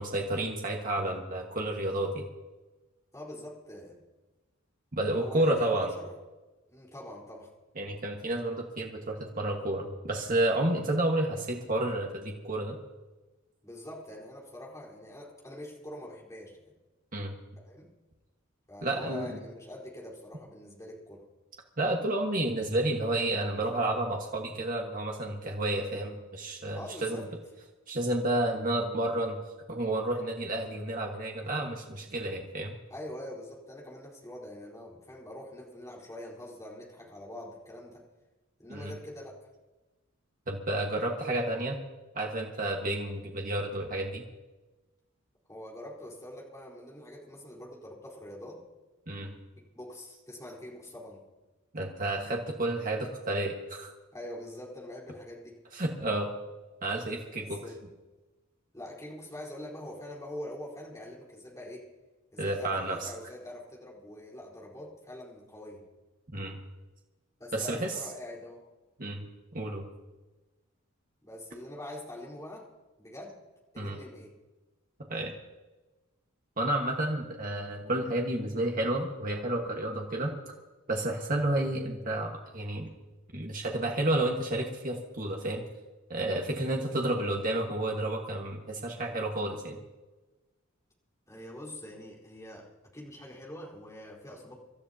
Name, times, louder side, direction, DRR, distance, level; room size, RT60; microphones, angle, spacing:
voice 1, 0.0-2.2 5.0-5.9 7.8-12.8 17.1-17.3 18.8-19.3 21.8-27.2 27.9-29.4 29.7-32.7 38.7-38.9 40.5-41.8 42.1-44.2 49.1-49.3 51.7-53.9 55.7-56.3 56.8-57.6 62.4-63.1 66.3-66.6 67.5-67.9 69.0-69.2 69.5-69.8 73.8-74.0 75.1-75.3 76.6-80.3 80.9-82.9 83.3-85.6 86.1-89.8, right 1 dB, 40° right, 0 dB, 1.6 m, -30 dB
voice 2, 3.1-4.0 5.1-6.1 6.7-7.5 13.6-16.6 17.6-17.9 18.7-21.2 26.7-27.3 32.9-38.0 38.6-39.5 45.5-48.6 49.6-51.2 54.1-55.6 57.4-57.8 58.7-61.8 62.3-65.8 67.4-68.6 71.2-72.7 73.0-73.4 73.7-74.3 91.3-94.6, left 1 dB, 15° left, -4 dB, 4.2 m, -44 dB
26.0 x 13.5 x 2.9 m, 1.2 s
head